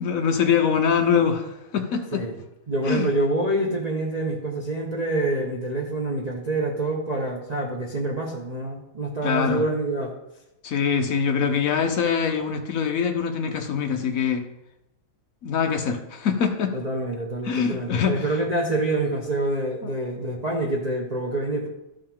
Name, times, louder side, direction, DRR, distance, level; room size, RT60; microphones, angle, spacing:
voice 1, 0.0-2.2 2.8-3.1 9.2-9.6 10.6-14.5 15.4-16.7 17.4-18.2 19.8-19.9, left 6 dB, 75° left, 5 dB, 0.7 m, -23 dB
voice 2, 2.7-10.1 16.7-21.7, right 2 dB, 60° right, -1 dB, 0.4 m, -26 dB
13.0 x 5.4 x 3.6 m, 0.91 s
omnidirectional pair, 2.4 m